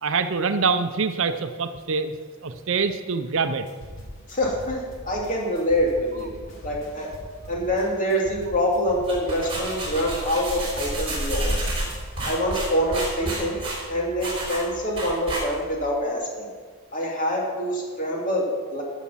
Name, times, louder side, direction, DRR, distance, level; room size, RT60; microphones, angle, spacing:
voice 1, 0.0-2.1 2.4-3.7, right 5 dB, 60° right, 9 dB, 0.6 m, -25 dB
sound 1, 3.7-10.3 10.6-12.4, equal, 60° left, 2.7 m, -42 dB
voice 2, 4.3-6.3 6.6-7.1 7.5-11.7 12.3-13.6 13.9-16.5 16.9-18.8, equal, 35° left, -2 dB, 2.4 m, -25 dB
sound 2, 8.9-15.8, right 1 dB, 25° right, 3.7 m, -30 dB
13.0 x 7.3 x 5.6 m, 1.6 s
head